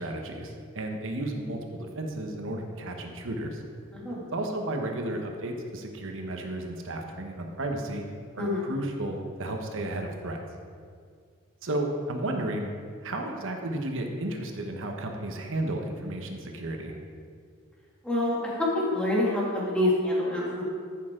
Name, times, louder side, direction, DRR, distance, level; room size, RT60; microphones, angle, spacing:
voice 1, 0.0-3.6 4.3-8.0 8.3-10.4 11.6-12.7 13.0-17.0, right 1 dB, 60° right, 3 dB, 1.1 m, -33 dB
voice 2, 3.9-4.3 8.4-8.7 18.0-18.4 18.9-20.6, left 1 dB, 5° left, -6 dB, 2.3 m, -26 dB
13.5 x 6.5 x 3.8 m, 2.1 s
head